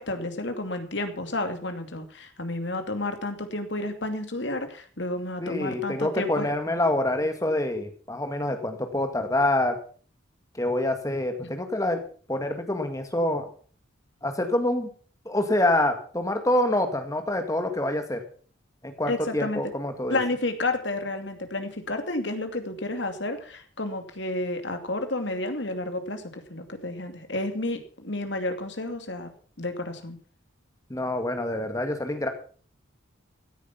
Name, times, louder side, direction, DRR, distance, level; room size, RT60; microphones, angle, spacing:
voice 1, 0.0-6.5 11.4-11.5 19.1-19.6 20.1-29.3 29.6-30.2, left 2 dB, 65° left, 7 dB, 2.5 m, -31 dB
voice 2, 5.4-9.8 10.6-12.0 12.3-13.5 14.2-14.9 15.3-18.2 18.8-20.2 30.9-32.3, left 1 dB, 15° left, 6 dB, 2.0 m, -26 dB
16.0 x 10.0 x 5.8 m, 0.43 s
head